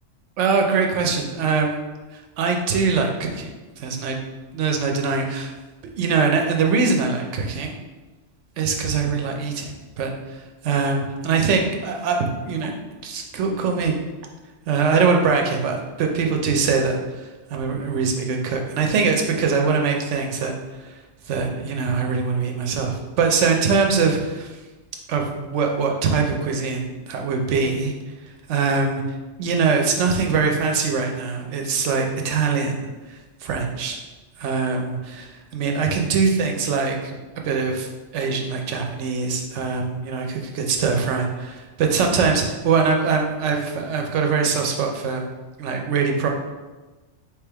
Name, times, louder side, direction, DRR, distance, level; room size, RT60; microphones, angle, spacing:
voice 1, 0.4-1.8 2.4-3.5 3.8-4.2 4.5-5.5 6.0-7.7 8.6-9.7 10.0-12.7 13.0-14.0 14.7-20.5 20.8-20.9 21.3-24.5 25.1-27.9 28.5-29.0 29.4-34.0 34.4-37.1 37.4-37.9 38.1-45.3 45.6-46.3, right 5 dB, 75° right, 2 dB, 1.0 m, -22 dB
3.4 x 3.2 x 4.6 m, 1.2 s
omnidirectional pair, 1.2 m